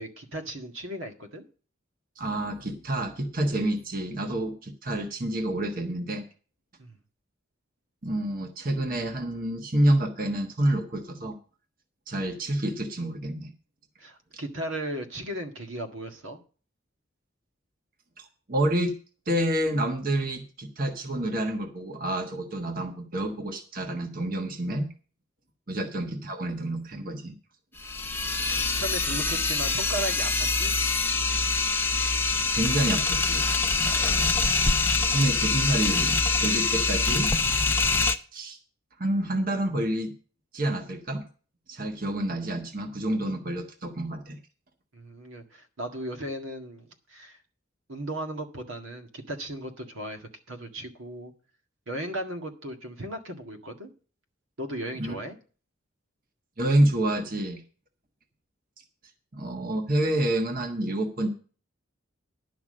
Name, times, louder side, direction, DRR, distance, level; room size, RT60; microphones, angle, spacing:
voice 1, 0.0-1.4 6.8-7.0 14.0-16.4 25.7-25.8 28.8-30.7 33.8-34.4 44.9-47.4 47.9-51.3 51.9-53.9 54.6-55.4, right 1 dB, 80° right, 5 dB, 1.8 m, -36 dB
voice 2, 2.2-6.2 8.0-11.4 12.1-13.5 18.2-18.9 19.3-24.9 25.7-27.3 28.5-28.6 32.5-33.5 35.1-37.3 38.3-38.6 39.0-40.1 40.5-41.2 41.7-44.4 54.9-55.1 56.6-57.6 59.3-61.3, right 1 dB, 45° right, 5 dB, 1.3 m, -28 dB
sound 1, 27.8-38.1, left 3 dB, 10° left, 0.6 m, -25 dB
11.0 x 5.9 x 7.5 m, 0.38 s
head